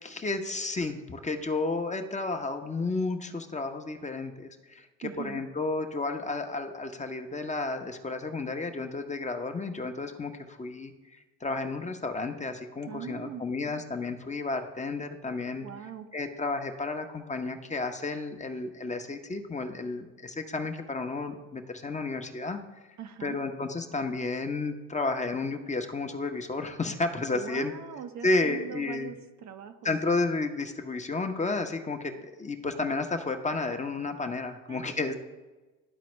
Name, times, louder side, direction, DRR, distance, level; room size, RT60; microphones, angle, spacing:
voice 1, 0.0-10.9 11.4-15.6 16.1-22.6 23.2-27.7 28.2-29.1 29.8-35.1, left 3 dB, 20° left, 6 dB, 0.8 m, -32 dB
voice 2, 5.0-5.4 12.8-13.4 15.6-16.1 23.0-23.4 27.3-29.9 34.7-35.1, right 8 dB, 55° right, 7 dB, 0.7 m, -41 dB
12.0 x 4.2 x 3.2 m, 1.2 s
supercardioid pair, 65°, 34 cm